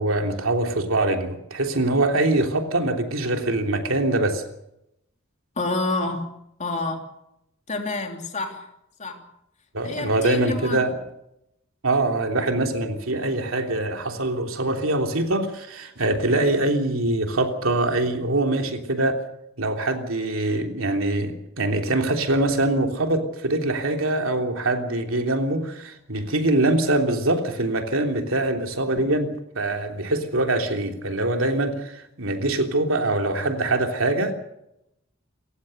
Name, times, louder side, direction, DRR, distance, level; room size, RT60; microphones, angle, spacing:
voice 1, 0.0-4.4 9.7-11.0 11.8-19.2 19.6-34.3, right 2 dB, 70° right, 4 dB, 3.3 m, -23 dB
voice 2, 5.6-6.3 6.6-7.0 7.7-8.7 9.0-9.2 9.8-10.8, left 2 dB, 35° left, 3 dB, 3.1 m, -28 dB
28.0 x 15.0 x 6.6 m, 0.83 s
head